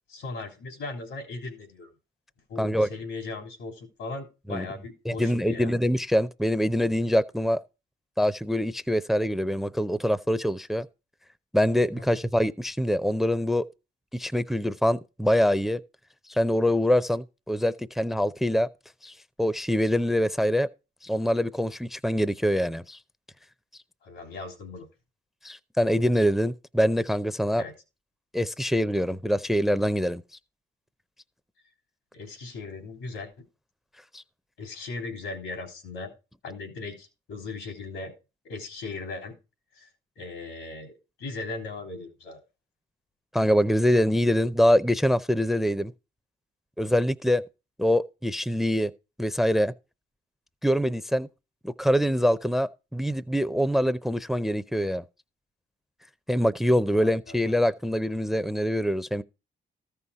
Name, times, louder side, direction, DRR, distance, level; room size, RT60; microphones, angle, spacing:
voice 1, 0.1-1.9 2.5-5.7 12.0-12.2 24.0-24.9 27.6-27.7 32.1-33.3 34.6-36.1 36.4-38.1 38.4-39.3 39.7-39.9 40.2-42.4 56.9-57.5, left 3 dB, 85° left, 3.2 m, -38 dB
voice 2, 2.6-2.9 4.5-4.6 5.1-7.6 8.2-10.9 11.5-13.6 14.1-15.8 16.3-18.7 19.0-20.7 21.0-23.0 25.4-27.6 28.3-30.2 34.1-34.2 43.3-45.9 46.8-47.4 47.8-48.9 49.2-49.7 50.6-51.3 51.6-55.0 56.3-59.2, equal, ahead, 0.5 m, -24 dB
13.5 x 5.6 x 4.7 m
cardioid pair, 90°, 20 cm